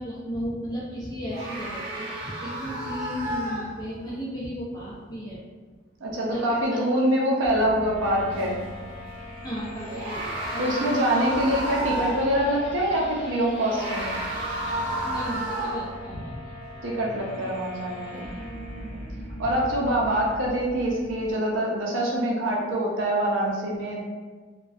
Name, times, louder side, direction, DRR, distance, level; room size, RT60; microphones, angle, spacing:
voice 1, 0.0-5.4 6.2-6.8 9.4-11.0 15.0-16.4 19.4-19.5 20.2-20.3, equal, 20° left, -8 dB, 0.5 m, -35 dB
sound 1, 1.3-4.1 8.3-8.4 9.7-12.4 13.5-16.0, right 1 dB, 30° right, 0.9 m, -32 dB
voice 2, 6.0-8.6 10.6-14.1 16.8-18.3 18.8-19.0 19.4-24.0, right 1 dB, 70° right, -3 dB, 0.5 m, -25 dB
sound 2, 7.4-21.4, left 1 dB, 60° left, 0.9 m, -40 dB
2.5 x 2.1 x 2.3 m, 1.4 s
head